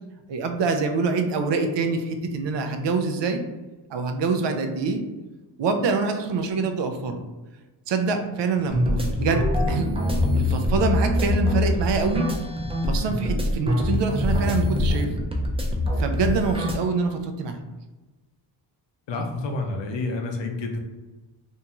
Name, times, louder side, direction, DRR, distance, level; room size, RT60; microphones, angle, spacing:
voice 1, 0.3-3.4 3.9-5.0 5.6-7.3 7.9-10.0 10.3-12.3 12.8-15.3 16.0-17.6, right 4 dB, 60° right, 6 dB, 0.5 m, -25 dB
sound 1, 8.7-16.7, left 1 dB, 10° right, 0.5 m, -24 dB
voice 2, 19.1-20.8, left 3 dB, 65° left, 3 dB, 0.7 m, -29 dB
2.7 x 2.2 x 2.9 m, 1.2 s
cardioid pair, 65°, 48 cm